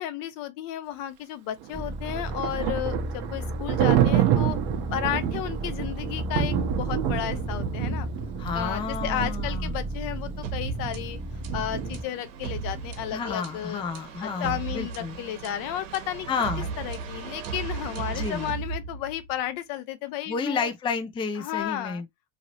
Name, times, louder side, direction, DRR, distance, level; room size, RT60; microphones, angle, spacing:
voice 1, 0.0-4.6 4.9-8.1 8.5-11.2 11.5-13.8 14.2-16.3 16.8-20.7 21.4-22.0, left 12 dB, 60° left, 0.7 m, -33 dB
Thunder, 1.6-13.4, right 10 dB, 70° right, 0.9 m, -29 dB
sound 1, 1.7-12.0, right 1 dB, 20° right, 0.8 m, -34 dB
voice 2, 8.4-9.7 13.1-15.2 16.3-16.7 18.1-18.5 20.3-22.1, left 5 dB, 15° left, 0.4 m, -31 dB
sound 2, 10.4-19.4, right 5 dB, 85° right, 1.2 m, -36 dB
3.0 x 2.7 x 2.8 m
supercardioid pair, 105°, 38 cm